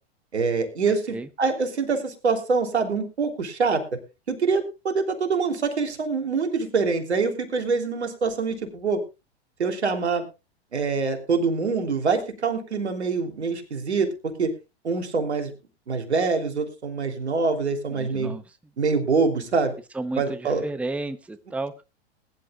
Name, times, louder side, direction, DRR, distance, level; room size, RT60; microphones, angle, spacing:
voice 1, 0.3-3.8 4.3-9.0 9.6-10.2 10.7-14.1 14.4-14.5 14.8-15.5 15.9-18.4 18.8-19.7 20.2-20.6, right 4 dB, 85° right, 6 dB, 3.3 m, -25 dB
voice 2, 17.9-18.4 19.9-21.8, right 2 dB, 5° right, 12 dB, 0.9 m, -32 dB
20.5 x 11.0 x 2.4 m, 0.28 s
hypercardioid pair, 105°, 33 cm